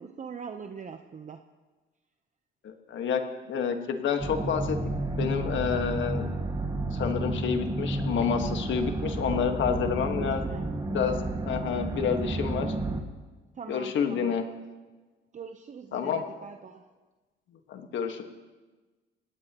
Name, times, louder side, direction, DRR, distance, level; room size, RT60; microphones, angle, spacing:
voice 1, 0.0-1.4 9.9-10.7 13.5-14.4 15.3-16.9, right 6 dB, 40° right, 6 dB, 0.9 m, -42 dB
voice 2, 2.6-3.2 3.5-4.8 5.2-6.3 6.9-10.4 10.9-11.1 11.5-12.7 13.7-14.4 15.9-16.2 17.7-18.2, left 7 dB, 70° left, 5 dB, 1.7 m, -29 dB
sound 1, 4.2-13.0, right 2 dB, 20° right, 1.9 m, -31 dB
24.5 x 18.0 x 3.1 m, 1.3 s
cardioid pair, 90°, 20 cm